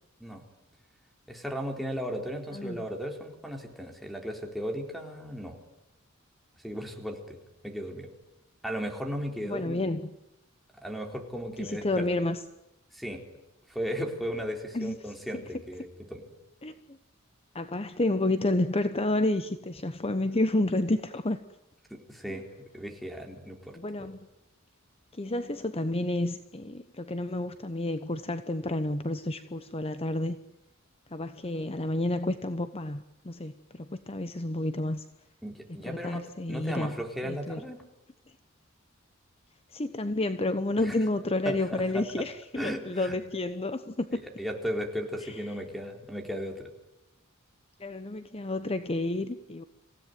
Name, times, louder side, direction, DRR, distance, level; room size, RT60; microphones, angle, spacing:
voice 1, 1.3-5.6 6.6-8.1 8.6-9.8 10.8-12.0 12.9-13.2 13.7-16.2 21.9-23.8 35.4-37.8 40.8-40.9 41.4-42.2 42.6-43.2 44.4-46.7, equal, ahead, 4 dB, 4.0 m, -36 dB
voice 2, 9.4-10.2 11.6-12.4 14.7-15.4 16.6-17.0 17.5-21.4 22.3-22.4 23.7-24.2 25.1-30.4 31.1-35.1 35.8-37.0 37.2-37.6 39.7-44.2 45.2-45.4 47.8-49.6, left 2 dB, 30° left, 10 dB, 1.0 m, -30 dB
27.0 x 17.0 x 9.3 m, 0.93 s
head